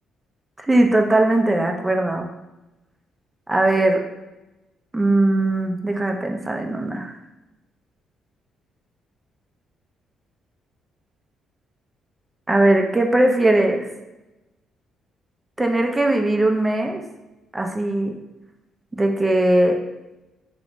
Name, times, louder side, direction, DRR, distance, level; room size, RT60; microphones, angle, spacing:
voice 1, 0.6-2.3 3.5-4.0 4.9-7.1 12.5-13.9 15.6-17.0 17.5-18.1 19.0-19.8, right 1 dB, 15° right, 3 dB, 0.4 m, -19 dB
2.4 x 2.1 x 2.9 m, 0.99 s
cardioid pair, 90°, 0 cm